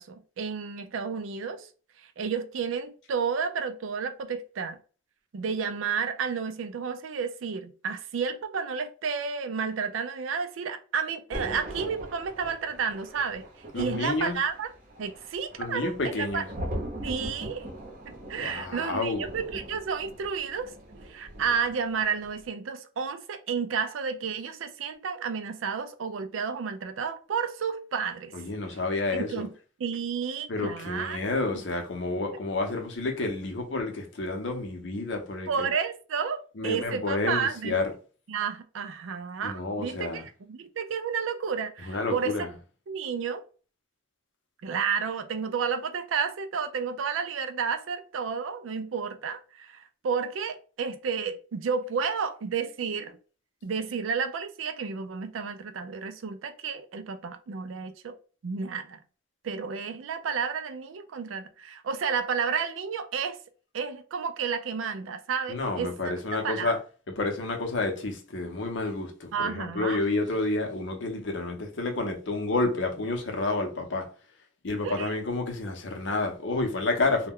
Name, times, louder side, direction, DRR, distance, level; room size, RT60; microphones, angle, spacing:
voice 1, 0.0-1.7 2.0-4.8 5.3-13.4 13.7-14.7 15.0-16.4 17.0-17.7 18.1-20.7 21.0-28.3 28.7-28.8 29.1-29.5 29.8-31.2 35.5-37.8 38.3-40.2 40.5-42.4 42.9-43.4 44.6-53.2 53.6-58.2 58.4-59.0 59.4-63.4 63.7-66.1 66.4-66.7 69.3-70.0 74.8-75.1, right 6 dB, 90° right, 0.4 m, -31 dB
Thunder, 11.3-21.9 22.2-22.5, right 1 dB, 45° right, 0.8 m, -40 dB
voice 2, 13.7-14.4 15.6-16.5 18.3-19.3 28.3-29.5 30.5-35.7 36.6-37.9 39.4-40.2 41.8-42.5 65.5-66.8 67.1-74.1 74.6-77.3, left 2 dB, 70° left, 0.6 m, -30 dB
2.2 x 2.1 x 3.5 m
head